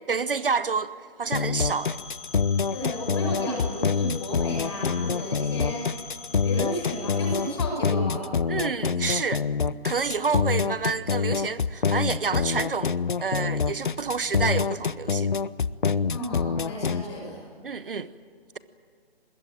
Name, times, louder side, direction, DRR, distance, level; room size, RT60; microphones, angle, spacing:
voice 1, 0.1-0.9 1.2-2.0 8.5-9.4 9.8-12.9 13.2-15.3 17.6-18.1, right 5 dB, 60° right, 0.9 m, -28 dB
sound 1, 1.3-17.0, left 5 dB, 50° left, 0.7 m, -26 dB
Telephone, 1.7-7.5, left 5 dB, ahead, 3.2 m, -43 dB
voice 2, 2.7-5.9 6.4-8.3 16.1-17.5, left 1 dB, 25° left, 7.3 m, -33 dB
25.5 x 21.5 x 8.9 m
hypercardioid pair, 175°, 32 cm